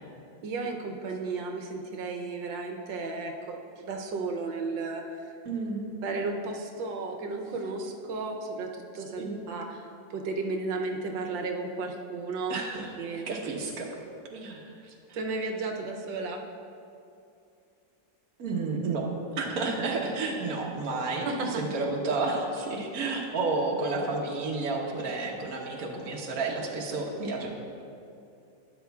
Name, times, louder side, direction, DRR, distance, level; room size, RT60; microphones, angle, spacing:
voice 1, 0.4-5.4 6.0-12.6 13.0-13.3 15.1-16.4 21.2-21.6, right 3 dB, 90° right, 2 dB, 1.5 m, -34 dB
voice 2, 5.4-5.9 9.2-9.4 12.5-12.9 13.3-13.9 14.3-14.9 18.4-27.5, right 3 dB, 55° right, -1 dB, 1.4 m, -31 dB
12.0 x 9.8 x 2.3 m, 2.6 s
omnidirectional pair, 2.0 m